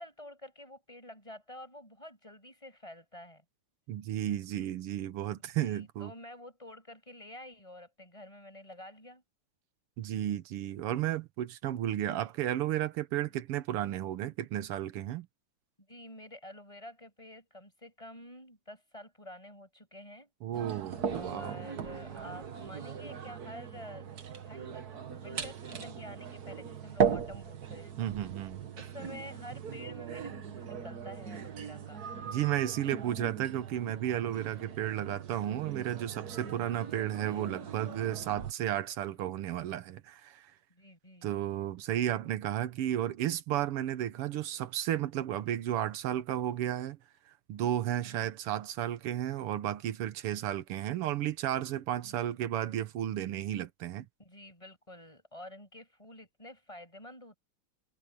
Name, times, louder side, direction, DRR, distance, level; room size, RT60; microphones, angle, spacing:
voice 1, 0.0-3.4 5.4-9.2 13.2-13.4 15.9-20.3 21.1-24.1 24.4-27.9 28.7-32.0 36.6-36.9 39.1-39.3 40.7-41.3 48.0-48.3 51.9-52.2 54.2-57.4, left 1 dB, 15° left, 7.9 m, -49 dB
voice 2, 3.9-6.1 10.0-15.3 20.4-21.6 28.0-28.6 32.3-40.5 41.2-47.0 47.5-54.1, right 12 dB, 90° right, 1.9 m, -33 dB
sound 1, 20.5-38.5, right 7 dB, 50° right, 1.7 m, -38 dB
omnidirectional pair, 2.4 m